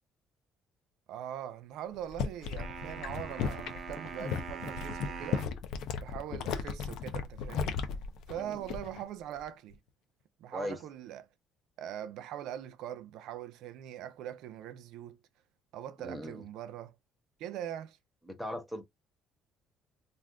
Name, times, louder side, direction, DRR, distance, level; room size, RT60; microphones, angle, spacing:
voice 1, 1.1-5.4 6.0-7.8 8.3-9.8 10.4-11.3 11.8-15.2 15.7-17.0 17.4-18.0, right 10 dB, 80° right, 0.5 m, -42 dB
sound 1, 1.9-9.1 9.4-9.7, left 6 dB, 70° left, 0.6 m, -36 dB
sound 2, 2.6-5.6, right 6 dB, 40° right, 0.7 m, -43 dB
voice 2, 16.0-16.4 18.3-18.8, equal, 5° left, 0.8 m, -38 dB
2.5 x 2.4 x 3.5 m
cardioid pair, 125°, 0 cm